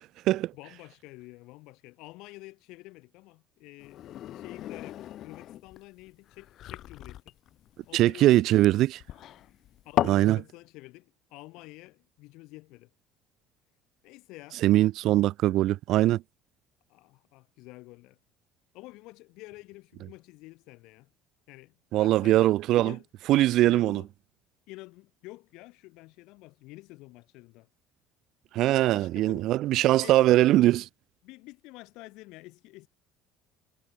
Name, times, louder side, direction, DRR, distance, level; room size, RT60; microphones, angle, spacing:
voice 1, 0.5-7.3 7.9-8.7 9.8-12.9 14.0-14.6 16.9-18.2 18.7-21.1 21.5-23.0 23.6-24.1 24.7-27.7 28.9-29.5 30.0-30.4 31.2-32.9, left 21 dB, 75° left, 4.4 m, -49 dB
sound 1, 3.8-10.3, left 12 dB, 55° left, 3.8 m, -36 dB
voice 2, 7.9-9.0 10.0-10.4 14.6-16.2 21.9-22.9 23.3-24.0 28.5-30.9, right 15 dB, 60° right, 0.3 m, -21 dB
cardioid pair, 115°, 0 cm